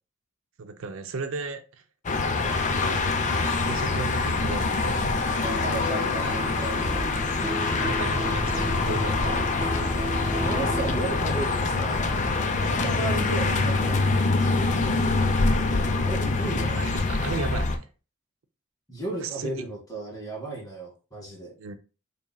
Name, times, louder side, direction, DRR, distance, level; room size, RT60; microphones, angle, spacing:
voice 1, 0.6-1.6 2.7-3.0 3.6-5.2 7.7-9.6 12.7-13.0 16.8-17.9 19.2-19.6 21.6-21.8, right 4 dB, 70° right, 0.5 m, -35 dB
sound 1, 2.0-17.8, left 3 dB, 35° left, 0.5 m, -25 dB
sound 2, 5.4-11.1, equal, 15° right, 1.1 m, -34 dB
voice 2, 5.6-7.1 10.4-12.2 12.7-14.2 16.0-16.9 18.9-21.5, right 2 dB, 20° left, 1.8 m, -34 dB
sound 3, 6.7-17.7, right 1 dB, 35° right, 1.1 m, -45 dB
4.1 x 3.6 x 2.2 m
head